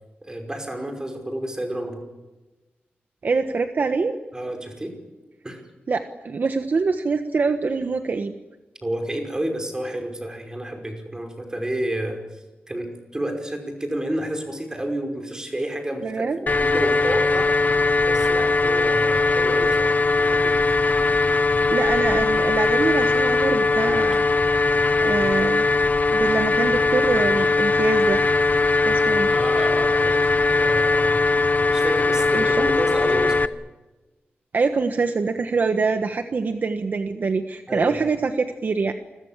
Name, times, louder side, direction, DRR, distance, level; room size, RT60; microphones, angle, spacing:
voice 1, 0.3-2.0 4.3-4.9 5.4-5.6 8.8-12.2 12.7-12.9 13.1-17.5 18.0-20.5 29.3-31.2 31.7-33.4 37.7-37.9, right 1 dB, 20° right, 3 dB, 5.4 m, -30 dB
voice 2, 3.2-4.1 5.9-8.3 16.0-16.4 21.7-24.3 24.7-25.6 26.1-28.2 28.8-29.3 32.3-32.5 34.5-38.9, right 4 dB, 50° right, 7 dB, 1.3 m, -24 dB
sound 1, 16.5-33.5, left 3 dB, 45° left, 0.9 m, -20 dB
28.5 x 22.0 x 7.5 m, 1.1 s
wide cardioid pair, 130°, 4 cm